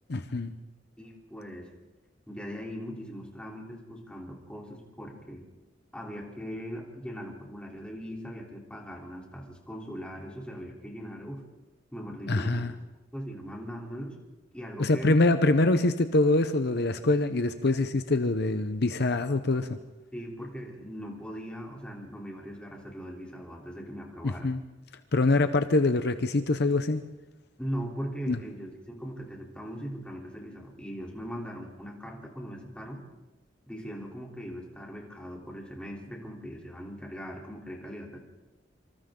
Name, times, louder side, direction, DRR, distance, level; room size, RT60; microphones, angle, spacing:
voice 1, 0.1-0.5 12.3-12.7 14.8-19.8 24.2-24.6 25.1-27.0 28.3-28.4, left 2 dB, 60° left, 9 dB, 0.9 m, -24 dB
voice 2, 1.0-1.7 2.3-5.4 5.9-11.4 11.9-12.8 13.1-14.2 14.5-15.2 20.1-24.5 27.6-33.0 33.7-38.2, equal, 5° left, -1 dB, 3.6 m, -40 dB
26.5 x 25.5 x 3.9 m, 1.1 s
head